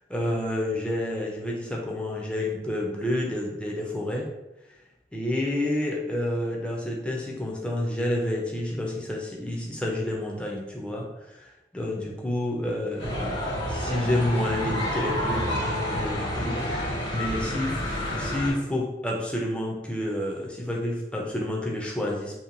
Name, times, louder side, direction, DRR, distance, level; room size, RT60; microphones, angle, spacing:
voice 1, 0.1-4.3 5.1-22.4, left 1 dB, 5° left, -2 dB, 0.4 m, -29 dB
sound 1, 13.0-18.5, left 1 dB, 65° left, 1.4 m, -29 dB
2.8 x 2.2 x 2.5 m, 0.94 s
head